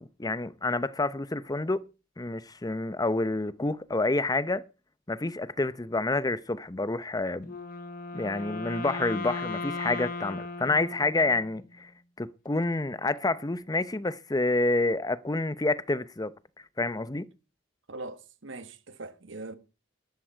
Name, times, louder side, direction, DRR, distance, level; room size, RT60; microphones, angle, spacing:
voice 1, 0.0-1.8 2.2-4.7 5.1-7.6 8.1-11.9 12.2-16.3 16.8-17.3, left 2 dB, 20° left, 0.7 m, -28 dB
Wind instrument woodwind instrument, 7.4-11.7, left 3 dB, 45° left, 0.9 m, -37 dB
voice 2, 17.9-19.6, right 2 dB, 70° right, 1.5 m, -41 dB
13.0 x 12.0 x 4.6 m
head